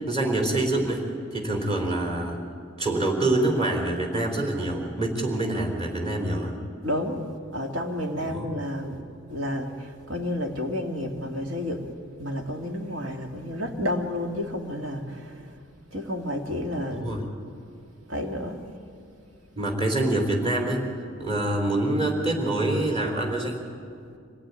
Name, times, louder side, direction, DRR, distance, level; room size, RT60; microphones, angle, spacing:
voice 1, 0.0-2.4 2.8-6.5 8.2-8.5 16.9-17.3 19.6-20.9 21.2-23.5, right 1 dB, 30° right, 2 dB, 3.9 m, -26 dB
voice 2, 6.8-7.2 7.5-9.0 9.3-11.8 12.2-15.0 15.9-17.2 18.1-18.6, left 1 dB, 70° right, 2 dB, 2.5 m, -30 dB
25.5 x 18.0 x 9.8 m, 2.4 s
head